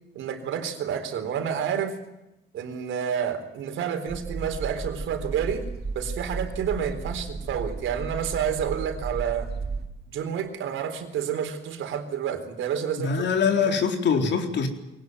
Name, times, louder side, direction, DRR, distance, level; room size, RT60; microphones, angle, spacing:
voice 1, 0.1-2.0 2.5-5.6 5.9-9.5 10.1-13.3 13.6-13.8, right 8 dB, 80° right, 7 dB, 3.9 m, -29 dB
sound 1, 4.1-9.9, right 4 dB, 55° right, 4.1 m, -34 dB
voice 2, 13.0-14.7, left 6 dB, 65° left, 5 dB, 4.1 m, -23 dB
23.5 x 18.5 x 9.5 m, 0.90 s
cardioid pair, 90°, 20 cm